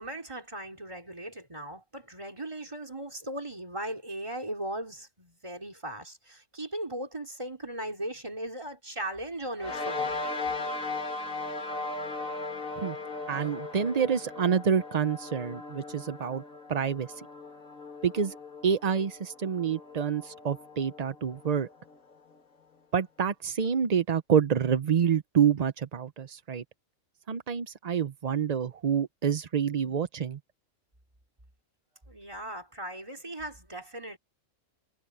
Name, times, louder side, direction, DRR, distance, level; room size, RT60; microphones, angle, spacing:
voice 1, 0.0-10.1 32.1-34.2, right 1 dB, 20° right, 3.9 m, -38 dB
sound 1, 9.6-22.3, left 3 dB, 85° left, 2.7 m, -38 dB
voice 2, 13.3-16.4 16.7-17.3 18.0-18.4 18.6-21.7 22.9-26.6 27.3-30.4, right 7 dB, 45° right, 0.5 m, -27 dB
omnidirectional pair, 1.4 m